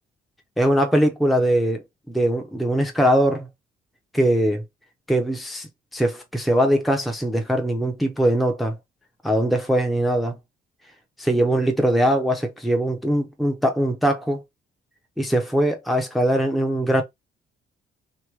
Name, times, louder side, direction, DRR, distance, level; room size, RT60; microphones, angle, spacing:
voice 1, 0.6-3.5 4.1-4.6 5.1-8.7 9.2-10.4 11.2-14.4 15.2-17.0, right 1 dB, ahead, 0.9 m, -21 dB
3.2 x 3.0 x 4.6 m
cardioid pair, 90°, 20 cm